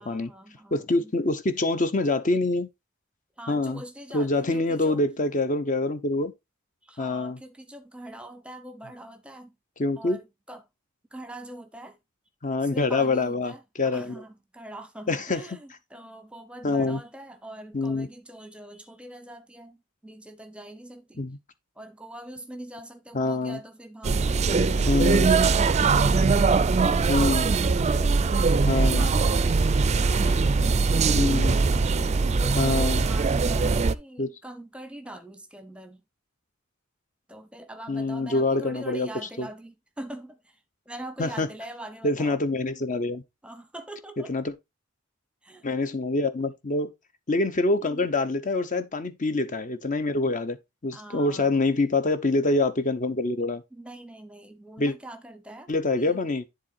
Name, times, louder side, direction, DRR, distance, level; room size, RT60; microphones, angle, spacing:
voice 1, 0.0-1.1 3.4-5.0 6.8-9.6 10.0-10.7 11.1-12.0 12.6-21.3 21.8-26.9 27.7-30.8 32.0-36.0 37.3-40.6 40.9-42.4 43.4-44.3 45.4-46.0 47.8-48.1 50.9-51.6 53.7-55.7 56.0-56.2, right 1 dB, 5° right, 0.9 m, -43 dB
voice 2, 0.7-2.7 3.5-3.8 4.1-6.3 7.0-7.4 9.8-10.2 12.4-14.2 15.1-15.4 16.6-17.0 17.7-18.1 21.2-21.4 23.1-23.6 24.9-25.3 27.1-27.5 28.7-29.1 31.1-31.6 32.5-33.0 34.2-34.3 37.9-39.1 39.4-39.5 41.2-41.5 42.0-43.2 44.3-44.5 45.6-46.9 47.3-50.6 50.8-53.6 54.8-54.9 55.7-56.4, left 2 dB, 40° left, 0.8 m, -25 dB
sound 1, 24.0-33.9, right 4 dB, 35° right, 0.4 m, -21 dB
10.5 x 3.8 x 4.1 m
head